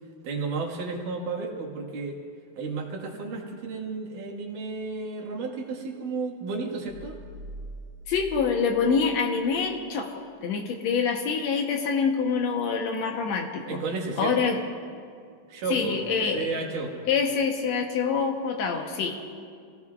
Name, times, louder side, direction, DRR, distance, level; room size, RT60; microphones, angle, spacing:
voice 1, 0.2-2.2 2.6-7.2 13.6-14.5 15.5-17.0, right 4 dB, 70° right, 0 dB, 3.1 m, -32 dB
sound 1, 6.9-9.9, equal, 50° left, 3.3 m, -43 dB
voice 2, 8.1-13.8 14.2-14.6 15.7-16.5 17.1-19.2, left 5 dB, 65° left, 2 dB, 1.8 m, -26 dB
26.0 x 17.0 x 2.4 m, 2.3 s
omnidirectional pair, 4.0 m